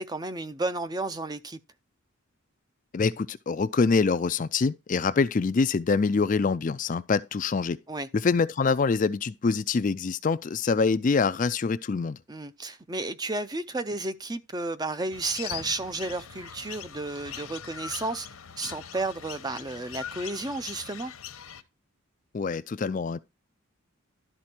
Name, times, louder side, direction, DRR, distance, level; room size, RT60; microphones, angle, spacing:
voice 1, 0.0-1.6 7.9-8.1 12.3-18.3 18.6-21.1, right 2 dB, 20° right, 0.5 m, -32 dB
voice 2, 2.9-7.8 8.1-12.2 22.3-23.2, left 4 dB, 35° left, 0.3 m, -25 dB
sound 1, 15.1-21.6, left 8 dB, 80° left, 1.0 m, -41 dB
12.0 x 4.2 x 4.4 m
head